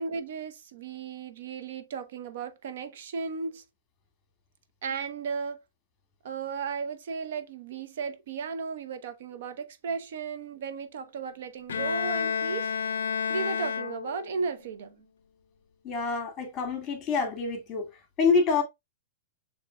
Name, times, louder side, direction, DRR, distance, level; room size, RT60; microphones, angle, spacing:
voice 1, 0.0-3.6 4.8-5.6 6.2-12.7 13.3-15.0, right 5 dB, 70° right, 0.9 m, -35 dB
Bowed string instrument, 11.7-14.4, left 7 dB, 90° left, 0.3 m, -30 dB
voice 2, 15.8-17.9 18.2-18.6, left 4 dB, 25° left, 2.0 m, -26 dB
6.8 x 3.1 x 2.3 m
hypercardioid pair, 135°, 0 cm